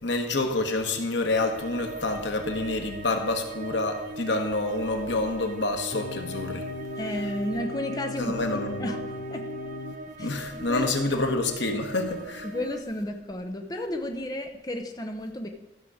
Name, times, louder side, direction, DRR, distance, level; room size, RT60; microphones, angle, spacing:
voice 1, 0.0-6.6 8.2-8.9 10.2-12.5, left 2 dB, 85° left, 4 dB, 1.4 m, -28 dB
sound 1, 1.3-12.8, right 2 dB, 45° right, 0.6 m, -40 dB
sound 2, 5.9-10.0, left 2 dB, 55° left, 0.4 m, -37 dB
voice 2, 7.0-8.4 8.8-9.0 9.3-9.4 10.2-10.3 10.7-11.3 12.4-15.5, left 1 dB, 20° left, 4 dB, 0.7 m, -32 dB
13.5 x 6.6 x 5.0 m, 1.1 s
head